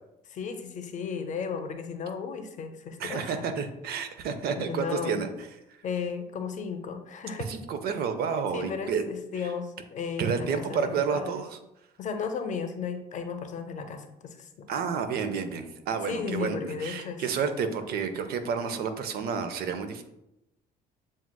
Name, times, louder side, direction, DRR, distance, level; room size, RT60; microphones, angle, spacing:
voice 1, 0.3-3.5 4.6-5.2 5.8-7.5 8.5-11.4 12.0-14.7 16.1-17.2, left 6 dB, 45° left, 7 dB, 0.6 m, -35 dB
voice 2, 3.0-5.3 7.5-9.0 10.2-11.6 14.7-20.0, right 6 dB, 65° right, 9 dB, 0.5 m, -30 dB
7.2 x 2.4 x 2.2 m, 0.89 s
cardioid pair, 110°, 17 cm